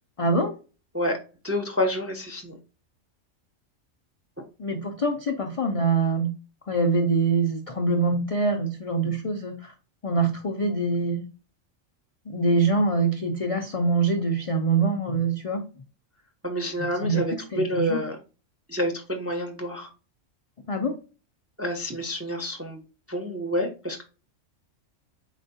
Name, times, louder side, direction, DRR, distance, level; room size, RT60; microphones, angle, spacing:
voice 1, 0.2-0.5 4.6-6.3 6.7-9.7 10.0-11.3 12.3-15.6 16.8-18.0 20.7-20.9, right 3 dB, 60° left, 4 dB, 0.3 m, -24 dB
voice 2, 1.4-2.5 16.4-18.2 18.7-19.9 21.6-22.8 23.1-24.0, equal, 20° right, 3 dB, 0.4 m, -28 dB
4.3 x 4.0 x 2.7 m, 0.34 s
omnidirectional pair, 1.4 m